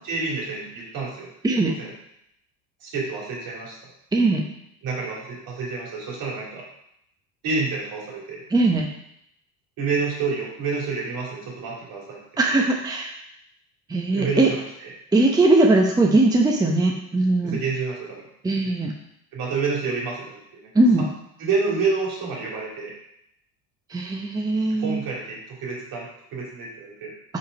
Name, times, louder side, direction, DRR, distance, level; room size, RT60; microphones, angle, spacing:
voice 1, 0.0-1.3 1.6-1.9 2.8-3.8 4.8-6.6 7.4-8.4 9.8-12.2 14.1-14.9 17.4-18.3 19.3-20.7 21.4-22.9 24.8-27.1, right 4 dB, 65° right, -3 dB, 3.0 m, -28 dB
voice 2, 1.4-1.7 4.1-4.5 8.5-8.9 12.4-13.2 13.9-14.5 15.1-17.6 18.4-18.9 20.7-21.1 23.9-25.0, right 2 dB, 10° right, 0 dB, 0.8 m, -20 dB
5.2 x 5.1 x 5.1 m, 0.77 s
supercardioid pair, 110°, 38 cm